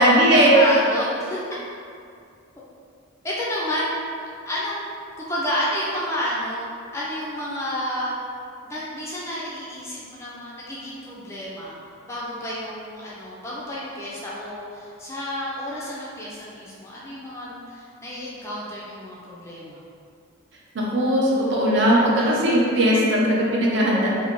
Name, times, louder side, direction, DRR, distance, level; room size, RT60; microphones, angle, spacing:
voice 1, 0.0-0.5 20.7-24.1, equal, 60° right, -4 dB, 0.5 m, -19 dB
voice 2, 0.5-1.4 2.6-2.7 3.2-3.9 4.5-4.9 5.2-6.7 6.9-8.1 8.7-11.8 12.1-19.8, left 1 dB, 15° left, -7 dB, 0.3 m, -30 dB
2.6 x 2.1 x 2.9 m, 2.3 s
head